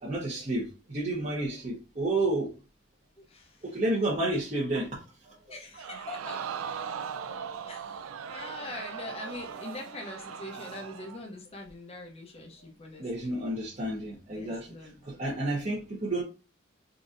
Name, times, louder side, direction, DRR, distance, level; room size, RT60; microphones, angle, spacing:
voice 1, 0.0-2.5 3.7-4.9 13.0-14.7 15.1-16.2, right 2 dB, 35° right, -6 dB, 0.9 m, -30 dB
voice 2, 3.2-3.6 5.5-6.4 7.7-13.4 14.3-15.7, left 2 dB, 30° left, 1 dB, 0.6 m, -43 dB
Crowd, 5.8-11.2 11.7-11.8, right 7 dB, 80° right, 0.3 m, -39 dB
3.8 x 2.6 x 2.5 m, 0.32 s
head